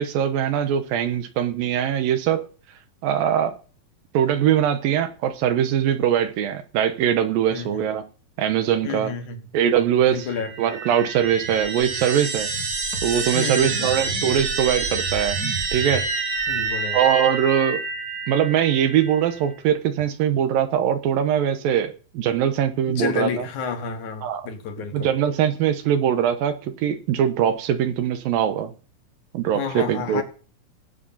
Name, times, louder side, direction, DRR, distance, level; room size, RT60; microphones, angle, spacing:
voice 1, 0.0-2.4 3.0-3.5 4.1-8.0 8.4-9.1 9.5-10.3 10.6-12.5 13.0-15.4 15.7-16.1 16.9-17.8 18.3-23.5 24.2-24.5 24.9-26.5 26.8-28.7 29.3-30.2, right 9 dB, 85° right, 8 dB, 2.8 m, -22 dB
voice 2, 7.5-7.8 8.8-9.4 10.1-10.5 13.3-13.9 16.5-17.0 22.9-25.1 29.5-30.2, left 6 dB, 60° left, 5 dB, 2.9 m, -30 dB
sound 1, 10.2-19.5, right 3 dB, 50° right, 1.1 m, -28 dB
17.0 x 8.0 x 5.5 m, 0.40 s
omnidirectional pair, 4.0 m